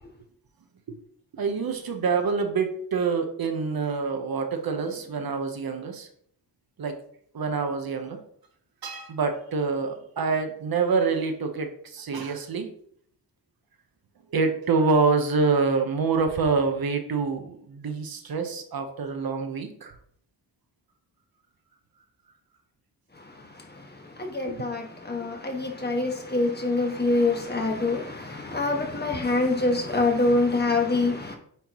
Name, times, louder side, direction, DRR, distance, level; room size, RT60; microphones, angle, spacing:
voice 1, 1.3-6.1 6.8-6.9 7.3-8.2 8.8-12.7 14.3-19.9 24.5-24.6, right 4 dB, 60° right, 1.0 m, -26 dB
voice 2, 23.1-31.4, left 2 dB, 25° left, 1.2 m, -26 dB
9.1 x 4.4 x 3.0 m
wide cardioid pair, 130°, 41 cm